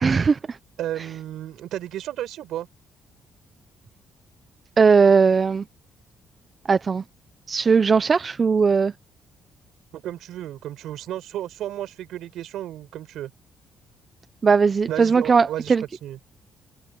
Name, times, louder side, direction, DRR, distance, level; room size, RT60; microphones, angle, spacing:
voice 1, 0.0-0.6 4.8-5.6 6.7-7.0 7.5-8.9 14.4-15.8, right 5 dB, 40° right, 0.8 m, -18 dB
voice 2, 0.8-2.7 9.9-13.3 14.9-15.7 16.0-16.2, right 12 dB, 85° right, 4.9 m, -33 dB
cardioid pair, 90°, 0 cm